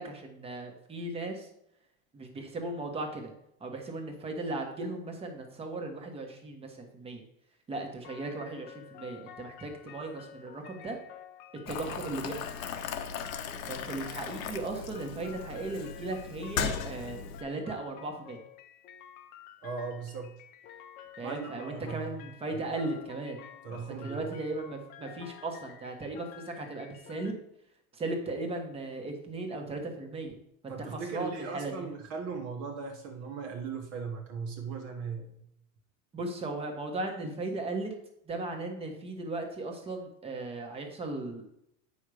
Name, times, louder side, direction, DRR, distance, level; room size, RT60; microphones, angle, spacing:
voice 1, 0.0-1.5 2.1-3.3 3.6-7.2 7.7-11.0 11.7-12.5 13.7-18.4 21.2-23.4 23.7-27.4 27.9-30.4 30.6-31.9 36.1-37.9 38.3-41.4, right 2 dB, 15° right, 3 dB, 1.2 m, -37 dB
sound 1, 8.0-27.3, left 10 dB, 25° left, 0.4 m, -51 dB
Boiling, 11.7-17.4, left 7 dB, 85° left, 1.2 m, -37 dB
voice 2, 19.6-20.3 21.2-22.2 22.5-22.6 23.6-24.3 30.7-35.4, right 5 dB, 35° right, 3 dB, 1.2 m, -38 dB
9.0 x 5.5 x 4.9 m, 0.76 s
supercardioid pair, 155°, 40 cm